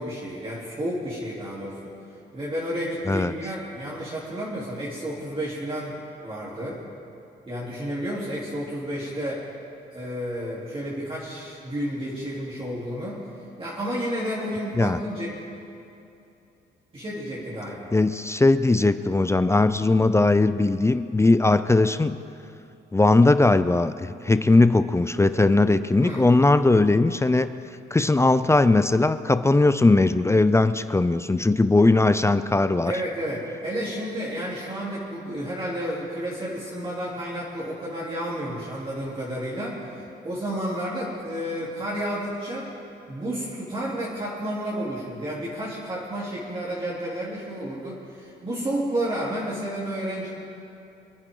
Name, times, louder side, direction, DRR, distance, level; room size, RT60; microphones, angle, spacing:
voice 1, 0.0-1.8 2.3-6.8 7.5-9.4 9.9-13.2 13.6-15.3 16.9-17.9 26.0-26.3 32.8-42.7 43.1-50.3, equal, 25° right, -8 dB, 3.4 m, -31 dB
voice 2, 17.9-22.2 22.9-27.5 27.9-32.9, left 2 dB, 15° left, 12 dB, 0.5 m, -19 dB
27.0 x 9.7 x 3.9 m, 2.8 s
cardioid pair, 90°, 20 cm